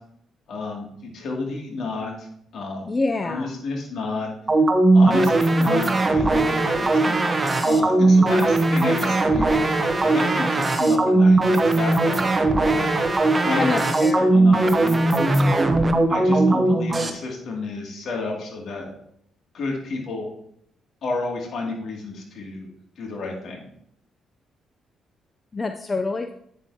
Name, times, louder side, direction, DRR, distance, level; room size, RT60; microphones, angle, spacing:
voice 1, 0.5-2.3 2.5-2.9 3.2-4.3 4.9-7.2 7.6-9.7 10.0-12.9 13.4-15.6 16.1-18.9 19.5-20.3 21.0-22.7 23.0-23.6, left 3 dB, 65° left, -1 dB, 2.4 m, -31 dB
voice 2, 2.8-3.5 13.6-14.3 25.5-26.3, left 3 dB, 30° left, 7 dB, 0.5 m, -26 dB
sound 1, 4.5-17.1, right 2 dB, 25° right, 0.9 m, -19 dB
8.9 x 7.0 x 2.8 m, 0.71 s
cardioid pair, 90°, 0 cm